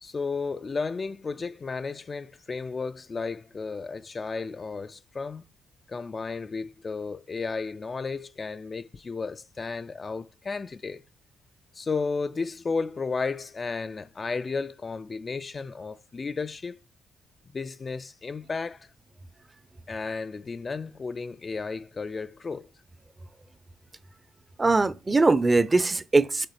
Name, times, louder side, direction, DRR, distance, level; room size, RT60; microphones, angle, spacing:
voice 1, 0.0-5.5 5.9-11.0 11.7-16.8 17.5-18.9 19.9-22.7, left 4 dB, 35° left, 0.3 m, -33 dB
voice 2, 24.6-26.5, right 3 dB, 20° right, 0.5 m, -21 dB
6.8 x 3.7 x 4.2 m
cardioid pair, 90°, 0 cm